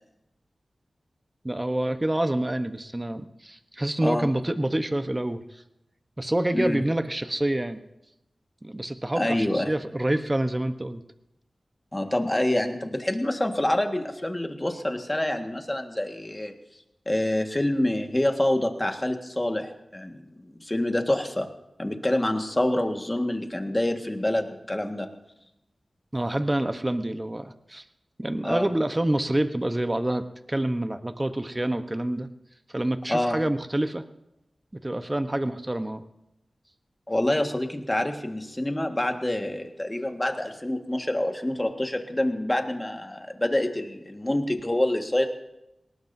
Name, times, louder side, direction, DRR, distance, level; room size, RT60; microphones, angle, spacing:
voice 1, 1.4-5.4 6.2-7.8 8.6-11.0 26.1-27.8 28.2-32.3 32.7-34.0 34.7-36.0, right 1 dB, 25° right, 9 dB, 1.0 m, -27 dB
voice 2, 9.1-9.7 11.9-16.6 17.0-21.5 21.8-25.1 28.4-28.7 33.1-33.4 37.1-45.3, left 1 dB, 20° left, 4 dB, 1.7 m, -26 dB
19.5 x 18.5 x 2.7 m, 0.89 s
cardioid pair, 50°, 0 cm